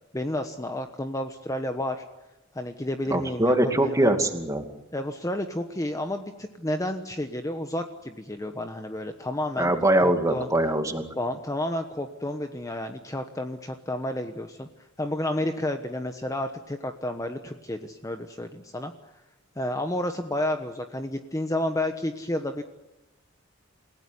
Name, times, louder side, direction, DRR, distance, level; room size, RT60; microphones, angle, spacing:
voice 1, 0.1-2.0 2.5-4.1 4.9-9.7 10.0-10.5 11.2-14.7 15.0-18.9 19.6-22.6, left 1 dB, 15° left, 7 dB, 1.2 m, -31 dB
voice 2, 3.1-4.7 9.6-11.0, right 1 dB, 15° right, 6 dB, 2.5 m, -22 dB
28.5 x 17.0 x 9.6 m, 0.98 s
head